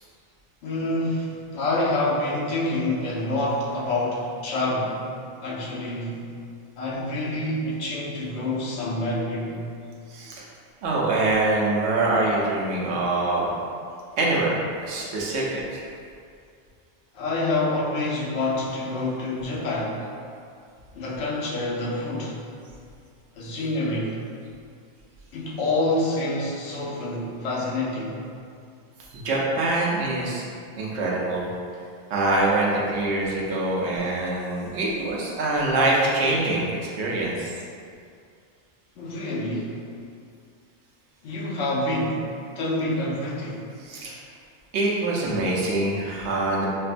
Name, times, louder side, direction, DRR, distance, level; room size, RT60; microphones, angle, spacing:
voice 1, 0.6-5.0 5.4-6.3 6.8-9.7 17.1-20.1 20.9-22.4 23.3-24.2 25.3-28.2 39.0-39.8 41.2-43.6, left 2 dB, 80° left, -5 dB, 1.0 m, -27 dB
voice 2, 10.1-10.4 10.8-13.5 14.2-14.6 14.8-15.8 29.1-30.4 30.8-31.5 32.1-37.5 43.8-44.2 44.7-46.7, right 2 dB, 75° right, -4 dB, 0.9 m, -24 dB
4.3 x 2.1 x 2.5 m, 2.4 s
omnidirectional pair, 1.2 m